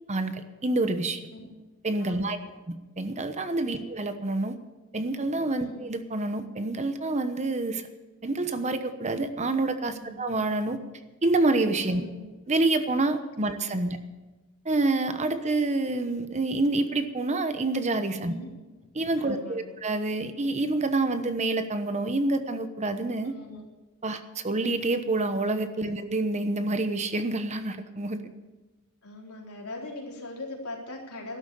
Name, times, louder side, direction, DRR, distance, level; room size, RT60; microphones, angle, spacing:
voice 1, 0.1-1.2 1.8-2.4 2.7-4.6 4.9-7.9 8.2-10.8 11.2-12.0 12.5-14.0 14.6-18.3 19.0-23.3 24.0-28.2, right 2 dB, 30° right, 9 dB, 1.0 m, -27 dB
voice 2, 2.0-2.5 3.7-3.9 5.6-5.7 9.9-10.2 11.9-12.2 18.2-18.5 19.2-19.7 23.2-23.6 25.8-25.9 29.0-31.4, left 2 dB, 85° left, -1 dB, 3.9 m, -41 dB
13.0 x 11.5 x 7.0 m, 1.1 s
head